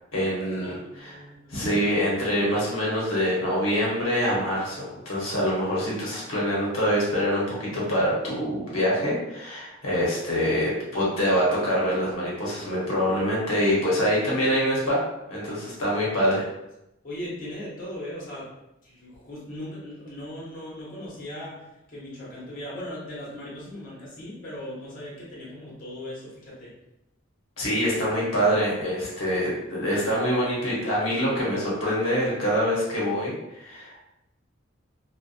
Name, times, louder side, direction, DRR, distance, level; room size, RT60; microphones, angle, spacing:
voice 1, 0.1-1.2 1.5-15.0 15.3-16.4 27.6-34.0, equal, 80° left, -5 dB, 0.8 m, -25 dB
voice 2, 0.6-1.7 17.0-18.5 18.8-26.7, left 1 dB, 45° left, -7 dB, 0.9 m, -38 dB
2.5 x 2.2 x 2.3 m, 0.88 s
head